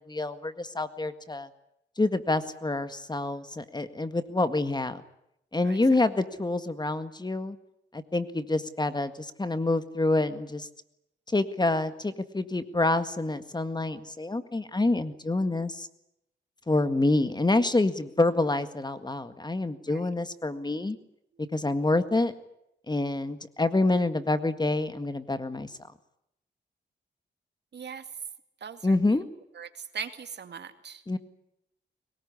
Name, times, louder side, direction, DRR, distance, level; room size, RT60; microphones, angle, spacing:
voice 1, 0.1-1.5 2.0-5.0 5.5-7.6 7.9-10.7 11.3-15.9 16.7-21.0 21.5-22.3 22.9-25.7 28.8-29.2 31.1-31.2, left 2 dB, 25° left, 11 dB, 1.8 m, -27 dB
voice 2, 27.7-28.0 28.6-29.0 29.6-31.0, right 6 dB, 65° right, 8 dB, 2.3 m, -40 dB
22.0 x 20.0 x 9.8 m, 0.80 s
cardioid pair, 75°, 19 cm